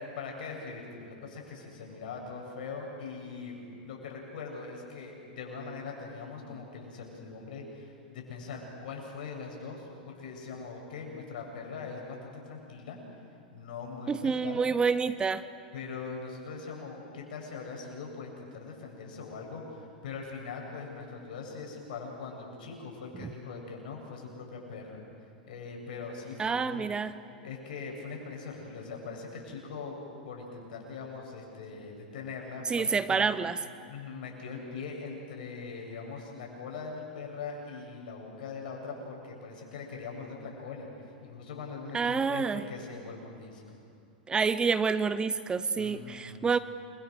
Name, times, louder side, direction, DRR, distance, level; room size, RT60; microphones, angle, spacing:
voice 1, 0.0-13.0 13.5-14.6 15.7-25.0 25.4-26.9 27.4-30.0 30.2-33.3 33.9-40.9 41.2-43.8 45.7-46.5, left 4 dB, 65° left, 1 dB, 7.9 m, -41 dB
voice 2, 14.1-15.4 23.2-23.3 26.4-27.2 32.7-33.6 41.9-42.6 44.3-46.6, right 5 dB, 15° right, 14 dB, 0.8 m, -28 dB
29.0 x 24.0 x 6.8 m, 2.5 s
hypercardioid pair, 110°, 5 cm